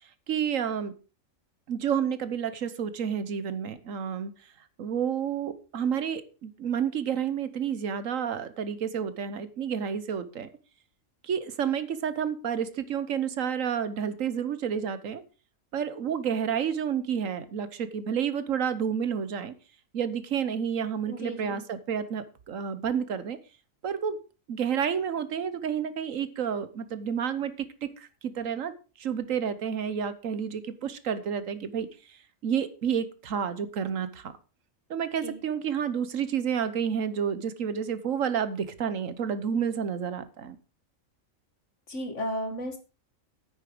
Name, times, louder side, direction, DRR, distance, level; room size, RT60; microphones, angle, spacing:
voice 1, 0.3-0.9 1.7-4.3 4.8-10.5 11.2-15.2 15.7-19.5 19.9-23.4 23.8-24.2 24.5-28.7 29.0-31.9 32.4-34.3 34.9-40.6, right 8 dB, 75° right, 13 dB, 1.4 m, -30 dB
voice 2, 21.1-21.6 34.9-35.4 41.9-42.8, equal, 60° left, 5 dB, 2.4 m, -34 dB
9.7 x 9.0 x 4.9 m, 0.34 s
omnidirectional pair, 1.4 m